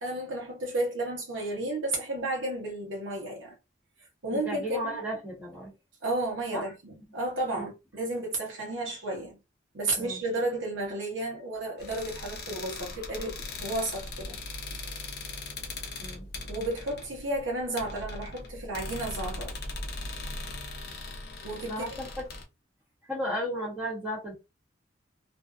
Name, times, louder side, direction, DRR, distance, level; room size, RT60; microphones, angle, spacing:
voice 1, 0.0-3.5 4.2-5.0 6.0-9.4 9.7-14.4 16.5-19.7 21.4-22.0, right 2 dB, 75° right, 0.9 m, -32 dB
voice 2, 4.3-5.7 6.5-6.7 7.6-7.7 9.9-10.2 16.0-16.3 21.7-22.3 23.1-24.3, equal, 10° right, 1.1 m, -34 dB
sound 1, 11.8-22.4, left 2 dB, 55° left, 0.6 m, -39 dB
2.5 x 2.3 x 2.4 m
head